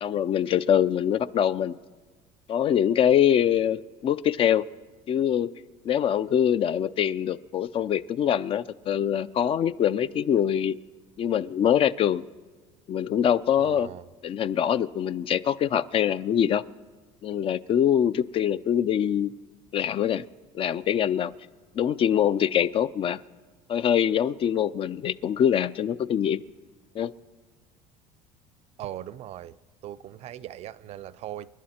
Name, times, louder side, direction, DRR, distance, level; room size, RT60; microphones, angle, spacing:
voice 1, 0.0-1.8 2.5-4.6 5.1-5.5 5.8-10.8 11.2-12.2 12.9-13.9 14.2-16.6 17.2-19.3 19.7-20.2 20.5-21.3 21.8-23.2 23.7-26.4 26.9-27.1, left 9 dB, 40° left, 0.4 m, -24 dB
voice 2, 13.6-14.1 28.8-29.6 29.8-31.5, right 12 dB, 50° right, 0.4 m, -39 dB
28.0 x 11.0 x 4.3 m
cardioid pair, 120°, 15 cm